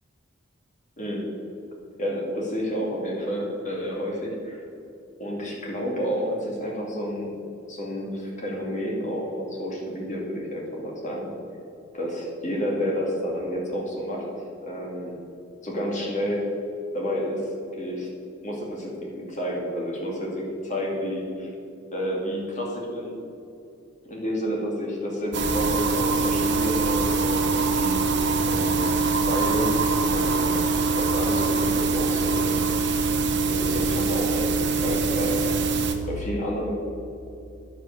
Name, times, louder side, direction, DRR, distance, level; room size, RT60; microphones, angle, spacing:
voice 1, 1.0-1.3 2.0-4.6 5.2-7.3 7.7-11.3 11.9-15.1 15.6-16.4 16.9-17.5 17.8-18.1 18.4-21.5 21.9-23.1 24.1-28.1 28.4-29.7 30.1-32.6 33.5-35.6 36.1-36.7, equal, 40° left, -2 dB, 2.5 m, -30 dB
sound 1, 25.3-35.9, right 4 dB, 60° right, 1.0 m, -23 dB
9.6 x 7.6 x 6.6 m, 2.8 s
head